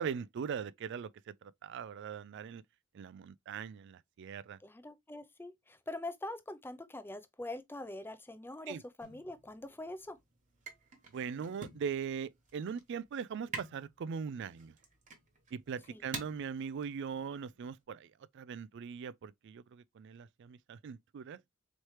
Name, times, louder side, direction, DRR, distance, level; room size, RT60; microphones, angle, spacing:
voice 1, 0.0-2.6 2.9-4.6 8.7-8.8 11.1-14.7 15.5-21.4, right 6 dB, 55° right, 0.3 m, -40 dB
voice 2, 4.6-10.2 15.9-16.0, left 2 dB, 10° left, 0.4 m, -44 dB
sound 1, 9.0-17.8, right 4 dB, 35° right, 1.2 m, -49 dB
4.3 x 3.2 x 3.0 m
head